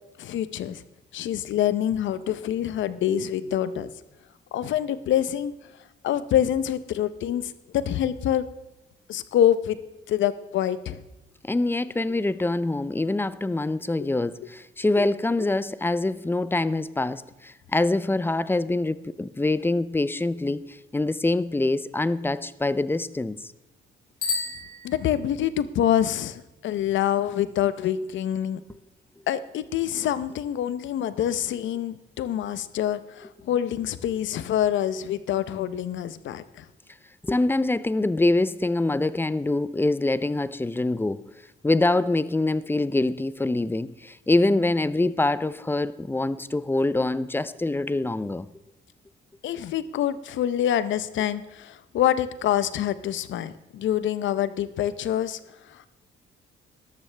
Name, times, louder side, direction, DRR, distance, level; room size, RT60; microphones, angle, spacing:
voice 1, 0.2-0.8 1.1-3.9 4.5-5.5 6.0-8.5 9.1-9.8 10.1-11.0 14.0-14.1 15.0-15.1 24.8-28.6 29.3-36.7 49.4-55.9, left 10 dB, 70° left, 0.7 m, -26 dB
voice 2, 11.4-23.5 37.2-41.2 41.6-48.5, left 2 dB, 10° left, 0.5 m, -25 dB
Bicycle bell, 24.2-25.5, left 4 dB, 45° left, 5.0 m, -32 dB
13.5 x 12.0 x 3.4 m
cardioid pair, 90°, 20 cm